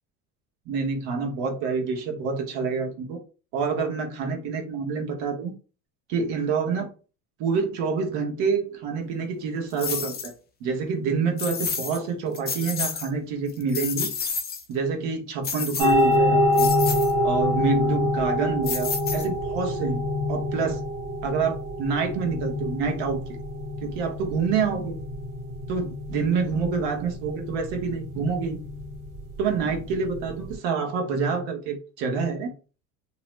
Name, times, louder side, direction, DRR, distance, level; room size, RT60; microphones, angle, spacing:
voice 1, 0.7-3.2 3.5-5.5 6.1-6.9 7.4-10.3 10.6-14.1 14.7-16.7 17.2-20.0 20.3-20.8 21.2-23.4 23.8-25.0 25.7-28.6 29.4-32.5, right 5 dB, 60° right, 1.1 m, -27 dB
sound 1, 9.8-10.3 11.4-12.0 12.3-13.1 13.5-14.6 15.4-16.1 16.5-17.1 18.6-19.5, left 6 dB, 20° left, 0.5 m, -30 dB
sound 2, 15.8-30.5, left 1 dB, 80° right, 1.4 m, -26 dB
2.9 x 2.0 x 3.1 m
supercardioid pair, 105°, 45 cm